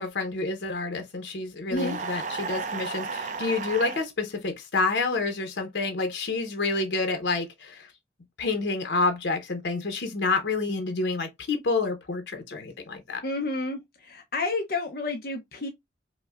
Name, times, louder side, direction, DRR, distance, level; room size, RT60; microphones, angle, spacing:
voice 1, 0.0-7.9 8.4-13.2, left 3 dB, 90° left, 0.7 m, -28 dB
sound 1, 1.8-4.0, right 5 dB, 45° right, 0.4 m, -33 dB
voice 2, 13.2-15.7, left 2 dB, 55° left, 0.6 m, -30 dB
5.1 x 2.1 x 2.3 m
head